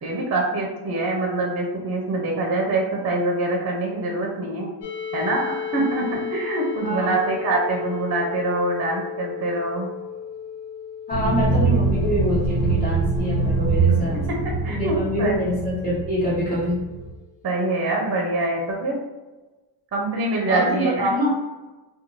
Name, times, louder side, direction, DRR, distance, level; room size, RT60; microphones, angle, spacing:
voice 1, 0.0-4.7 5.1-9.9 14.6-15.3 17.4-19.0 19.9-21.1, right 2 dB, 35° right, -1 dB, 0.5 m, -24 dB
sound 1, 4.8-16.5, left 7 dB, 65° left, 0.6 m, -35 dB
voice 2, 6.8-7.3 11.1-14.2 14.7-16.8 20.5-21.3, equal, 20° left, -12 dB, 1.0 m, -25 dB
sound 2, 11.1-17.1, right 3 dB, 5° right, 1.1 m, -23 dB
2.5 x 2.3 x 3.0 m, 1.2 s
wide cardioid pair, 140°, 44 cm